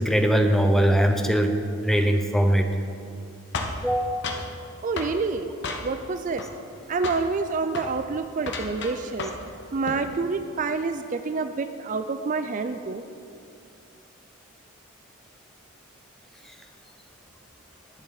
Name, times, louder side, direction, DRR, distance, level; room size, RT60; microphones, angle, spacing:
voice 1, 0.0-1.6 1.8-2.7 3.8-4.2, equal, ahead, 5 dB, 0.6 m, -21 dB
sound 1, 3.5-4.5 5.0-5.2 5.6-6.1 6.4-6.8 7.0-7.3 7.7-7.9 8.4-9.5 9.7-10.1, left 3 dB, 55° left, 1.1 m, -33 dB
voice 2, 4.8-5.5 5.8-6.4 6.9-9.3 9.7-13.0, right 4 dB, 40° right, 9 dB, 0.4 m, -28 dB
20.5 x 7.1 x 4.0 m, 2.6 s
head